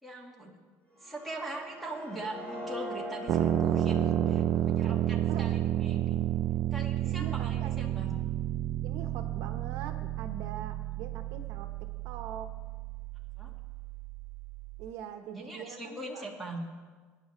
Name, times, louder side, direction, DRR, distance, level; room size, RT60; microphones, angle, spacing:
voice 1, 0.0-0.5 1.0-6.2 6.7-8.1 13.4-13.5 15.3-16.6, right 2 dB, ahead, -1 dB, 1.5 m, -41 dB
sound 1, 0.9-6.9, equal, 25° left, 3.1 m, -42 dB
sound 2, 3.3-14.9, right 11 dB, 40° right, 0.3 m, -31 dB
voice 2, 7.0-7.9 8.8-11.7 12.0-12.5 14.8-16.2, right 8 dB, 65° right, 6 dB, 1.0 m, -43 dB
23.0 x 10.0 x 3.1 m, 1.5 s
cardioid pair, 180°, 5 cm